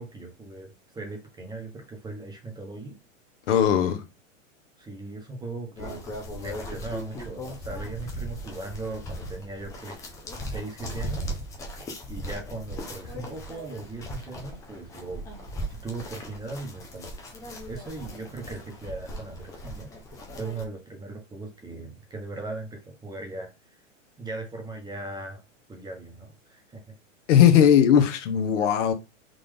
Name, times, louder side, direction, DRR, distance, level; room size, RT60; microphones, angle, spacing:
voice 1, 0.0-3.0 4.8-10.0 10.4-11.4 12.1-15.3 15.7-17.1 17.7-19.9 20.4-23.8 24.2-25.4 25.7-26.9, right 2 dB, 10° right, 0.9 m, -38 dB
voice 2, 3.5-4.0 27.3-28.9, left 9 dB, 65° left, 0.8 m, -18 dB
sound 1, 5.8-20.6, equal, 10° left, 0.3 m, -38 dB
3.7 x 2.4 x 3.3 m
hypercardioid pair, 120°, 39 cm